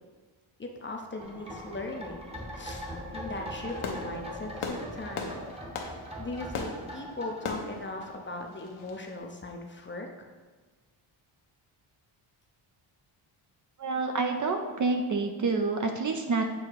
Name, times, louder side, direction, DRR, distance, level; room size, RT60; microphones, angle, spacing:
voice 1, 0.6-2.9 3.1-5.3 5.8-10.1, left 2 dB, 25° left, 2 dB, 0.5 m, -39 dB
sound 1, 1.2-8.6 8.8-8.9, equal, 10° right, 0.9 m, -41 dB
Fireworks, 3.5-9.1, left 4 dB, 75° left, 0.9 m, -39 dB
voice 2, 13.8-16.5, right 3 dB, 40° right, 5 dB, 0.5 m, -28 dB
7.7 x 2.8 x 4.6 m, 1.4 s
wide cardioid pair, 135°, 49 cm